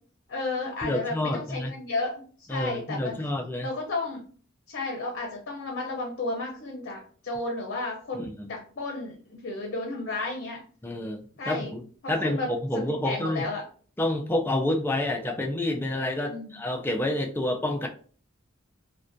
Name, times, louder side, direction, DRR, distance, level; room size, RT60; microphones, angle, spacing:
voice 1, 0.3-3.1 3.6-4.2 4.7-10.6 11.4-11.7 12.0-12.5 12.9-13.6 16.3-16.5, left 3 dB, 55° left, 0 dB, 0.6 m, -33 dB
voice 2, 0.8-1.7 2.5-3.7 8.2-8.5 10.8-11.8 12.1-13.5 14.0-17.9, left 1 dB, 10° left, 2 dB, 0.3 m, -28 dB
2.4 x 2.1 x 2.5 m, 0.43 s
head